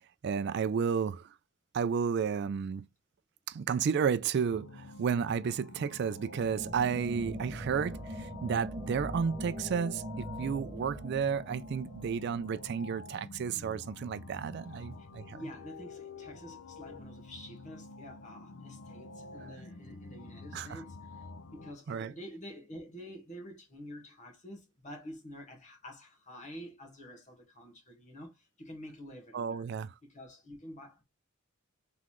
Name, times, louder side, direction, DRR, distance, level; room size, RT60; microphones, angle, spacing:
voice 1, 0.2-1.3 1.7-2.9 3.5-15.4 20.5-20.8 21.9-22.1 29.3-29.9, right 6 dB, 55° right, 0.3 m, -32 dB
sound 1, 4.4-21.7, left 3 dB, 65° left, 0.6 m, -48 dB
sound 2, 6.3-13.1, equal, 25° right, 1.0 m, -42 dB
voice 2, 14.7-21.3 21.5-29.7 30.0-31.0, equal, 35° left, 1.6 m, -48 dB
3.9 x 3.7 x 3.0 m
head